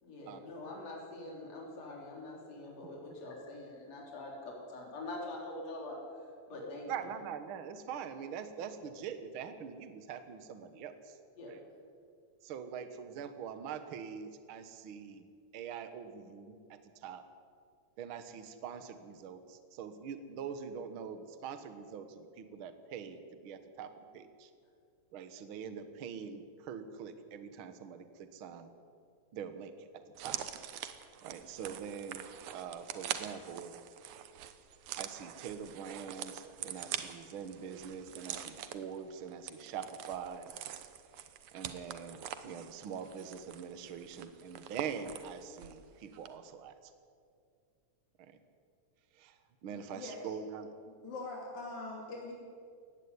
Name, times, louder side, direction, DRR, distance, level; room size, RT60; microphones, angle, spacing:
voice 1, 0.0-6.0 6.5-6.9 11.4-11.5, left 2 dB, 60° left, -2 dB, 4.7 m, -44 dB
voice 2, 6.9-11.2 11.5-11.6 12.4-15.3 15.5-17.2 18.0-24.5 25.1-28.7 29.3-30.4 31.2-32.3 32.5-33.7 35.0-40.5 41.5-46.9 48.2-48.4 49.1-50.7, right 7 dB, 55° right, 9 dB, 1.8 m, -44 dB
sound 1, 30.1-45.8 46.1-46.3, right 10 dB, 80° right, 2.4 m, -44 dB
voice 3, 51.0-52.3, left 3 dB, 80° left, -2 dB, 4.1 m, -42 dB
18.0 x 15.0 x 9.6 m, 2.3 s
omnidirectional pair, 3.3 m